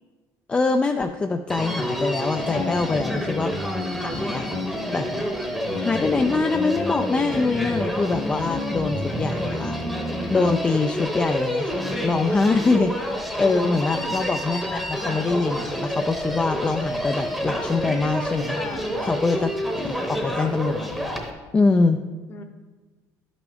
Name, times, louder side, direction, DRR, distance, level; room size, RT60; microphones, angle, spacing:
voice 1, 0.5-3.6 4.0-5.1 5.8-9.8 10.3-18.6 19.0-20.9 21.5-22.0, left 3 dB, 15° left, 5 dB, 0.3 m, -24 dB
Human voice, 1.5-21.3, equal, ahead, 0.9 m, -28 dB
voice 2, 2.5-3.2 18.5-19.1 22.3-22.4, left 4 dB, 35° left, 6 dB, 0.8 m, -36 dB
11.5 x 6.0 x 3.5 m, 1.3 s
cardioid pair, 135°, 7 cm